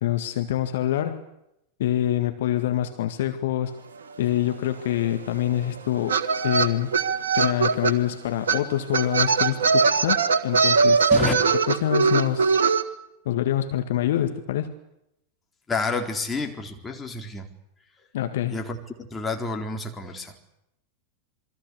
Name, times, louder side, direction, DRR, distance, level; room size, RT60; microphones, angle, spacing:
voice 1, 0.0-1.2 1.8-3.7 4.2-6.9 7.3-11.1 11.7-12.6 13.3-14.7 18.1-18.6, left 12 dB, 55° left, 8 dB, 1.8 m, -26 dB
sound 1, 4.4-4.5 4.6-7.9 8.5-8.6 8.9-12.8, right 5 dB, 70° right, 1.6 m, -21 dB
voice 2, 15.7-17.5 18.4-20.4, left 4 dB, 15° left, 3 dB, 4.1 m, -29 dB
28.0 x 22.5 x 8.4 m, 0.82 s
figure-of-eight pair, 90°, 0 cm